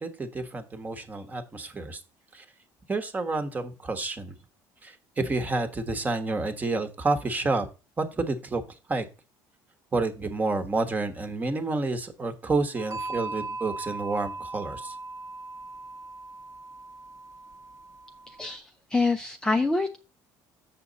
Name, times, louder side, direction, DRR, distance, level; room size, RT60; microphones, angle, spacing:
voice 1, 0.0-2.0 2.3-2.4 2.9-4.3 4.8-7.7 8.0-8.6 8.9-9.0 9.9-14.9, right 3 dB, 20° right, 8 dB, 1.3 m, -29 dB
sound 1, 12.7-18.6, right 2 dB, 40° right, 1.1 m, -39 dB
voice 2, 18.4-20.0, left 3 dB, 10° left, 5 dB, 0.6 m, -26 dB
7.5 x 6.1 x 4.0 m, 0.31 s
cardioid pair, 130°, 8 cm